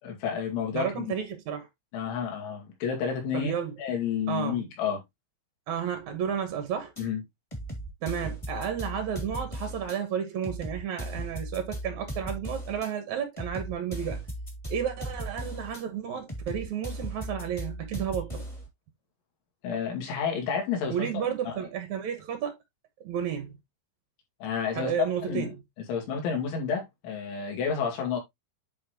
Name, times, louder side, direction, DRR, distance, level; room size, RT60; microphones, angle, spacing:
voice 1, 0.0-1.1 1.9-3.5 3.8-5.0 7.0-7.2 19.6-21.6 24.4-24.9 25.3-25.5 25.9-28.2, left 7 dB, 75° left, 4.6 m, -30 dB
voice 2, 0.7-1.7 3.3-3.7 4.3-4.7 5.7-6.9 8.0-14.2 14.7-18.4 20.9-22.6 23.0-23.6 24.7-25.5, right 8 dB, 90° right, 1.6 m, -32 dB
sound 1, 7.0-7.1 7.5-10.0 10.4-12.9 13.4-15.8 16.3-18.7, right 1 dB, 15° left, 1.2 m, -37 dB
10.5 x 4.2 x 3.0 m
omnidirectional pair, 5.4 m